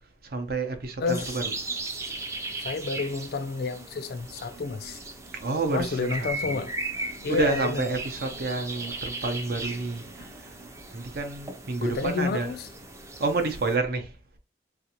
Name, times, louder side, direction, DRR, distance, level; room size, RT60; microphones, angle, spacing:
voice 1, 0.2-1.6 5.3-6.7 6.9-10.6 10.9-12.5 13.2-14.2, right 3 dB, 55° right, 0.6 m, -29 dB
voice 2, 1.0-1.3 2.5-5.0 5.7-6.7 7.2-7.9 11.8-12.7, left 4 dB, 55° left, 0.4 m, -30 dB
sound 1, 1.1-13.8, right 2 dB, 15° right, 0.4 m, -37 dB
3.4 x 2.5 x 2.8 m
head